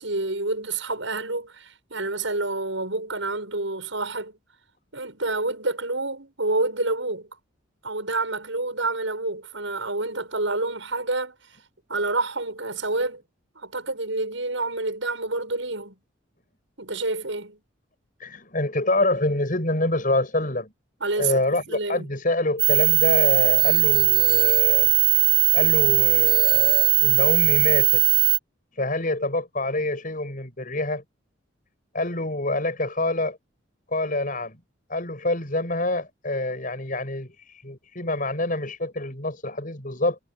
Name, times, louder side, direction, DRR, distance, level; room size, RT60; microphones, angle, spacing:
voice 1, 0.0-4.4 4.9-7.3 7.8-11.4 11.9-13.2 13.6-15.9 16.8-17.6 21.0-22.1, right 2 dB, 75° right, 7.8 m, -28 dB
voice 2, 18.2-20.7 21.2-24.9 25.5-28.0 28.7-31.0 31.9-33.4 33.9-34.6 34.9-40.2, left 2 dB, 45° left, 7.5 m, -26 dB
sound 1, 22.6-28.4, right 16 dB, 25° right, 0.4 m, -19 dB
head